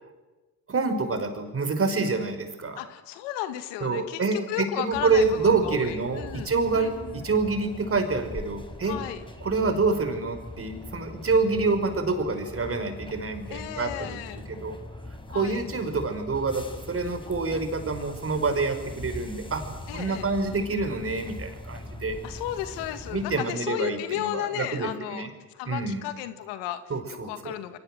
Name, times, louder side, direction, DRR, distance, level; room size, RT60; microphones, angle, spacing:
voice 1, 0.7-2.8 3.8-9.0 9.4-14.2 14.5-14.8 15.3-19.6 19.9-22.2 23.1-25.3 25.7-26.1 26.9-27.5, right 4 dB, 30° right, 7 dB, 5.3 m, -27 dB
voice 2, 2.8-6.5 6.7-7.2 8.8-9.2 13.5-14.4 15.3-15.6 19.9-20.3 22.2-25.3 25.5-27.8, left 12 dB, 80° left, 9 dB, 2.1 m, -34 dB
sound 1, 4.9-23.4, left 1 dB, 10° left, 4.7 m, -41 dB
29.5 x 23.0 x 7.8 m, 1.2 s
supercardioid pair, 80°, 42 cm